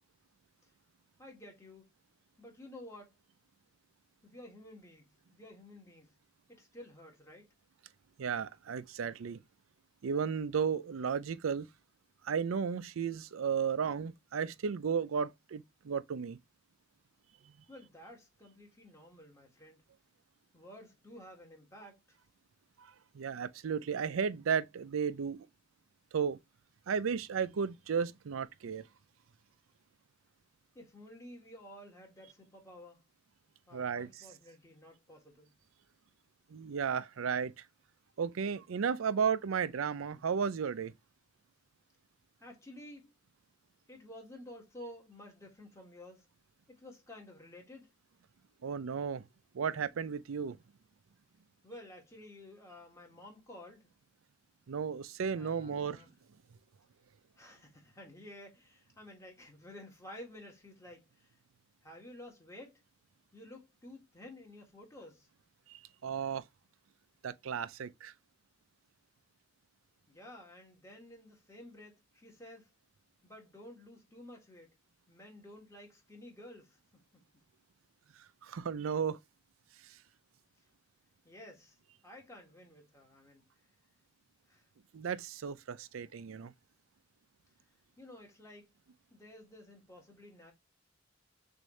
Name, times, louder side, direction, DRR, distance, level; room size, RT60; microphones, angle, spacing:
voice 1, 1.2-1.9 2.4-3.1 4.2-6.1 6.5-7.5 17.7-19.8 20.5-22.2 30.7-33.0 33.7-35.6 42.4-43.1 43.9-46.3 46.7-47.9 51.6-53.9 55.3-56.1 57.4-61.3 61.8-62.8 63.3-65.3 70.1-72.7 73.2-74.7 75.1-77.2 81.2-81.8 82.0-83.5 84.5-84.6 88.0-88.7 89.1-90.5, left 1 dB, 15° left, 1.6 m, -52 dB
voice 2, 8.2-9.4 10.0-11.7 12.2-16.4 22.8-22.9 23.1-25.5 26.1-26.4 26.9-28.9 33.7-34.2 36.5-37.5 38.2-40.9 48.6-49.3 49.5-50.6 54.7-56.0 65.7-66.4 67.2-68.1 78.4-79.2 84.9-86.5, right 6 dB, 85° right, 0.4 m, -34 dB
6.3 x 2.7 x 3.1 m
head